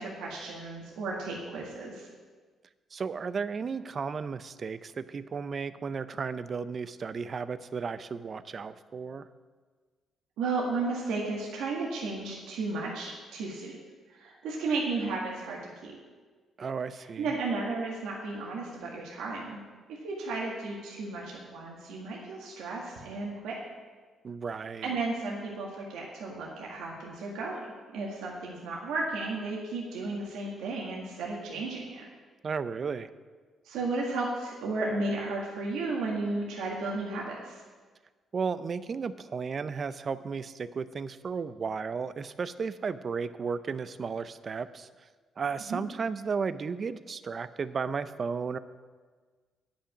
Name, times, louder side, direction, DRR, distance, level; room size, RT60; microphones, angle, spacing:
voice 1, 0.0-2.1 10.4-13.7 14.1-16.0 17.2-19.6 19.9-23.6 24.8-27.7 27.9-32.1 33.6-37.6 45.7-45.8, right 3 dB, 90° right, -3 dB, 1.8 m, -34 dB
voice 2, 2.9-9.3 16.6-17.3 24.2-25.0 32.4-33.1 38.3-45.1 45.4-48.6, right 5 dB, 45° right, 14 dB, 0.5 m, -34 dB
9.9 x 5.9 x 8.5 m, 1.5 s
cardioid pair, 90°, 0 cm